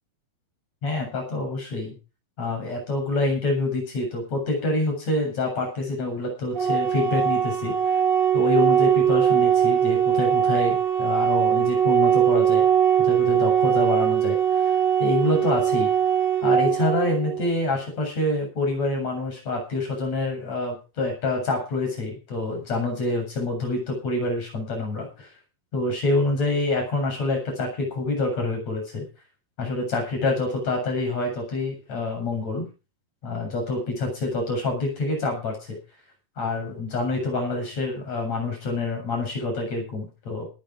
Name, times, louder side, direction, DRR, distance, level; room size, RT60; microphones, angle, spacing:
voice 1, 0.8-1.9 2.4-7.7 8.3-12.7 13.0-15.9 16.4-25.3 25.7-29.1 29.6-32.7 33.2-35.8 36.4-40.5, left 2 dB, 55° left, 2 dB, 8.8 m, -27 dB
Organ, 6.6-17.5, right 9 dB, 45° right, 4.3 m, -21 dB
19.5 x 10.0 x 5.1 m, 0.32 s
omnidirectional pair, 3.8 m